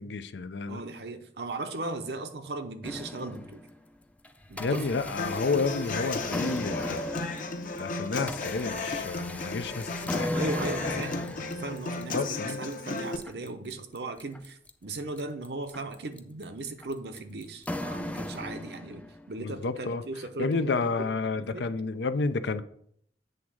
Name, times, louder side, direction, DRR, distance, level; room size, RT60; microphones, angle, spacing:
voice 1, 0.0-0.8 4.6-7.0 7.8-10.4 10.8-11.0 12.1-12.6 19.4-20.0 20.4-22.6, left 4 dB, 80° left, 0.5 m, -30 dB
voice 2, 0.7-3.7 4.5-5.3 10.3-21.7, right 2 dB, 65° right, 0.8 m, -37 dB
sound 1, 2.8-3.8 4.2-19.3, left 1 dB, 10° left, 0.4 m, -37 dB
Human voice / Acoustic guitar, 5.2-13.2, left 3 dB, 50° left, 0.7 m, -34 dB
7.8 x 3.6 x 6.2 m
head